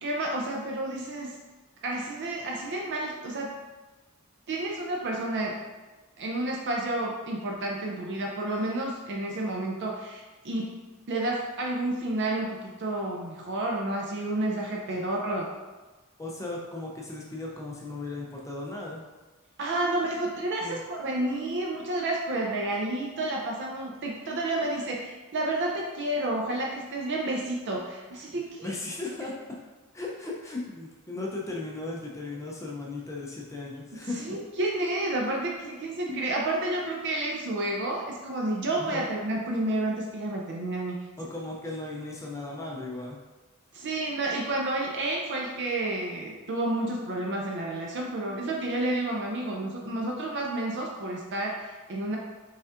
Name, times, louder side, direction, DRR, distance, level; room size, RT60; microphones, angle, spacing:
voice 1, 0.0-1.4 1.8-3.5 4.5-5.6 6.2-10.8 11.1-15.5 19.6-28.7 33.9-41.1 43.7-52.2, right 1 dB, 55° right, -1 dB, 0.5 m, -30 dB
voice 2, 16.2-19.0 20.6-20.8 28.6-29.3 29.9-34.4 36.1-36.2 38.8-39.1 41.2-43.2, left 2 dB, 15° left, -2 dB, 0.4 m, -36 dB
5.2 x 3.5 x 2.4 m, 1.2 s
head